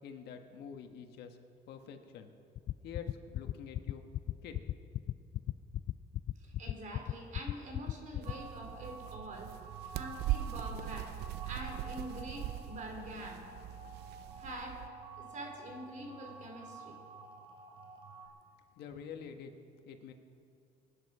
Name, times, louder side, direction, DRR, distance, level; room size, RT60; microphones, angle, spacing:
voice 1, 0.0-1.4 1.7-2.3 2.8-4.0 4.4-4.6 18.7-19.5 19.8-20.1, left 7 dB, 75° left, 5 dB, 1.5 m, -47 dB
sound 1, 2.6-8.5, left 13 dB, 50° left, 0.4 m, -34 dB
voice 2, 6.4-9.5 9.9-11.2 11.4-13.4 14.3-14.8 15.2-17.0, right 1 dB, 50° right, 2 dB, 3.2 m, -45 dB
sound 2, 8.2-18.3, right 3 dB, 30° right, 2.7 m, -50 dB
sound 3, 8.2-14.9, right 14 dB, 80° right, 0.5 m, -41 dB
23.0 x 10.0 x 4.9 m, 2.3 s
cardioid pair, 110°, 17 cm